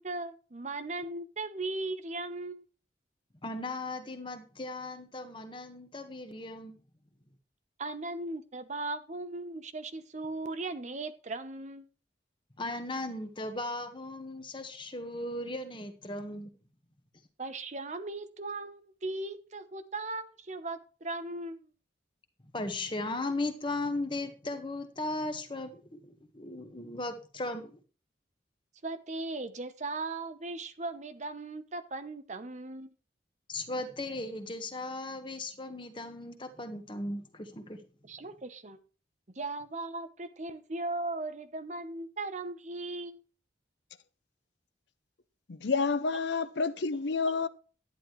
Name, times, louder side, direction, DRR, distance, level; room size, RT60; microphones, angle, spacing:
voice 1, 0.0-2.7 7.8-11.9 17.4-21.7 28.8-32.9 38.0-38.8 39.3-43.2, right 2 dB, 40° right, 0.8 m, -38 dB
voice 2, 3.4-6.8 12.6-16.5 22.5-27.8 33.5-37.8, left 2 dB, 25° left, 1.4 m, -37 dB
voice 3, 45.5-47.5, left 4 dB, 65° left, 0.6 m, -29 dB
11.0 x 10.0 x 3.1 m
head